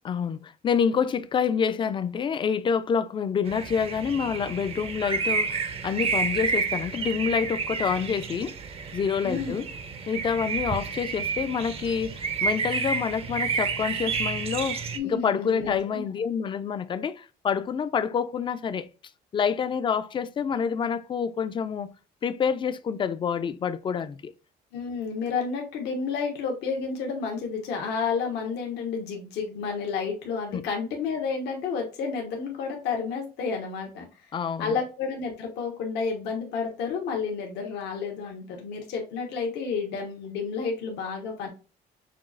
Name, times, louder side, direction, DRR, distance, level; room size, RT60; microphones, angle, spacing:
voice 1, 0.0-8.6 8.9-9.7 10.1-18.9 19.3-21.9 22.2-24.3 30.5-30.6 34.3-34.8, left 7 dB, 30° left, 0.4 m, -27 dB
sound 1, 3.5-15.0, right 5 dB, 35° right, 0.5 m, -30 dB
voice 2, 9.2-9.6 14.9-16.0 24.7-34.1 34.6-41.5, left 5 dB, 85° left, 1.1 m, -31 dB
5.8 x 2.4 x 2.4 m
cardioid pair, 110°, 17 cm